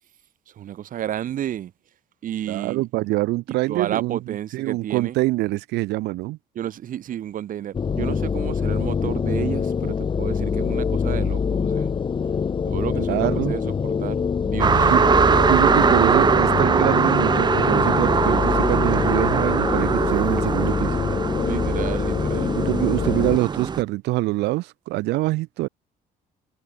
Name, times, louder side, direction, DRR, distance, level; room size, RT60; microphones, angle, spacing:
voice 1, 0.6-1.7 2.2-2.8 3.7-5.2 6.5-11.9 12.7-14.9 21.4-22.6, right 11 dB, 55° right, 1.2 m, -31 dB
voice 2, 2.5-4.2 4.5-6.4 13.1-13.5 14.8-15.0 15.4-21.0 22.7-25.7, right 19 dB, 85° right, 1.8 m, -24 dB
sound 1, 7.7-23.4, left 6 dB, 30° left, 1.0 m, -24 dB
sound 2, 14.6-23.8, right 6 dB, 25° right, 0.6 m, -21 dB
cardioid pair, 110°, 17 cm